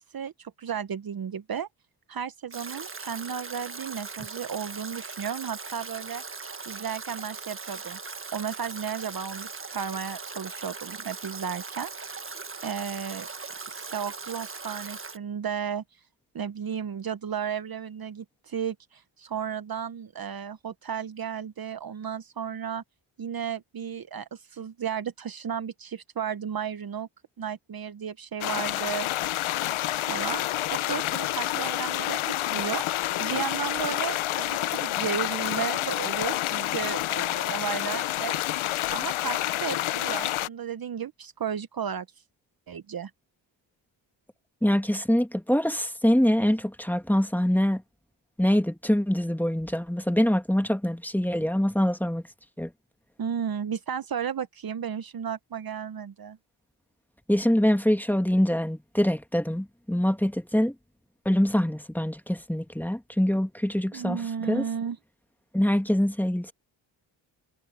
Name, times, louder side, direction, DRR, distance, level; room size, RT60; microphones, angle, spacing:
voice 1, 0.0-1.7 2.1-6.2 6.7-11.9 12.6-13.3 13.7-15.8 16.3-22.8 23.2-27.1 27.4-29.1 30.1-30.4 30.7-32.8 33.2-38.4 38.9-42.1 42.7-43.1 53.2-56.4 63.9-65.0, right 8 dB, 45° right, 1.0 m, -34 dB
Stream / Drip / Trickle dribble, 2.5-15.2, right 4 dB, 25° right, 1.5 m, -39 dB
sound 1, 28.4-40.5, left 14 dB, 75° left, 0.8 m, -28 dB
voice 2, 44.6-47.8 48.4-52.2 52.6-52.7 57.3-60.7 61.2-64.2 64.5-64.6 65.5-66.5, equal, 5° left, 1.7 m, -24 dB
cardioid pair, 65°, 49 cm